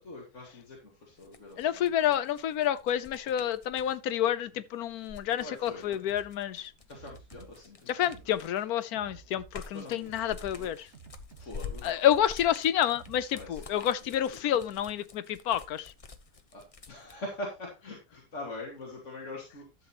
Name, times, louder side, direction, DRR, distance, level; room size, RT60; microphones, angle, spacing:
voice 1, 0.0-1.7 5.4-6.1 6.9-8.1 9.7-10.9 11.4-12.0 13.4-13.9 14.3-14.5 16.5-16.6 16.9-19.9, left 1 dB, 50° left, 2.5 m, -43 dB
sound 1, 1.2-4.0 4.9-8.7 9.1-17.2, left 5 dB, 30° left, 0.7 m, -47 dB
voice 2, 1.6-6.7 7.9-10.9 11.8-15.9, left 10 dB, 75° left, 1.1 m, -29 dB
sound 2, 6.1-13.8, right 5 dB, 45° right, 1.8 m, -53 dB
12.0 x 7.7 x 2.9 m
omnidirectional pair, 1.7 m